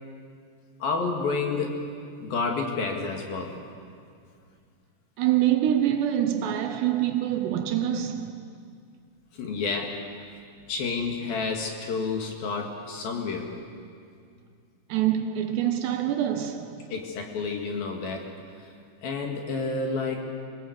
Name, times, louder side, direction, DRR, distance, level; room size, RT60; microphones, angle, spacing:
voice 1, 0.8-1.8 2.2-3.6 9.3-10.0 10.7-13.5 16.9-18.3 19.0-20.2, left 4 dB, 60° left, 3.3 m, -29 dB
voice 2, 5.2-8.3 14.9-16.7, right 11 dB, 75° right, 2.9 m, -25 dB
26.5 x 19.0 x 8.0 m
omnidirectional pair, 5.4 m